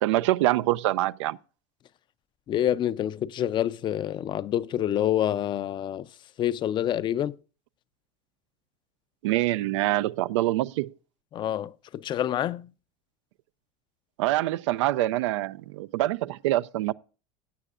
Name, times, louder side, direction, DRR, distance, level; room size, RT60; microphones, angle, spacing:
voice 1, 0.0-1.4 9.2-10.9 14.2-16.9, right 16 dB, 90° right, 0.4 m, -25 dB
voice 2, 2.5-6.1 6.4-7.4 11.3-12.7, left 11 dB, 30° left, 0.4 m, -27 dB
16.5 x 8.8 x 2.5 m
supercardioid pair, 125°, 15 cm